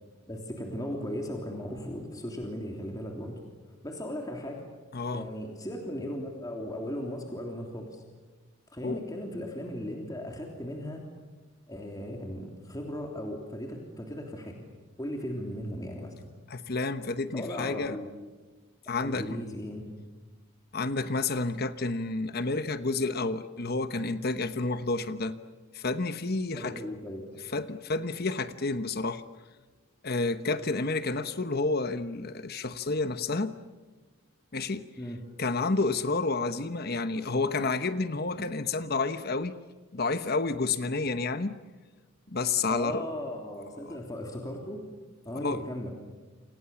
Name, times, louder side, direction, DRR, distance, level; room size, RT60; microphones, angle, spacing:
voice 1, 0.3-3.4 3.8-4.6 5.1-8.0 8.7-11.0 11.7-14.6 15.0-16.1 17.3-18.1 19.0-19.9 26.5-27.2 35.0-35.2 42.7-44.8 45.2-45.9, equal, 15° left, 1 dB, 3.3 m, -37 dB
voice 2, 4.9-5.3 8.8-9.0 16.5-18.0 18.9-19.4 20.7-25.4 25.7-26.8 27.5-29.2 30.0-33.5 34.5-34.9 35.4-39.6 39.9-41.6 42.3-43.0 43.8-44.0 45.4-45.6, left 3 dB, 45° left, 11 dB, 1.1 m, -30 dB
29.0 x 28.0 x 7.2 m, 1.3 s
head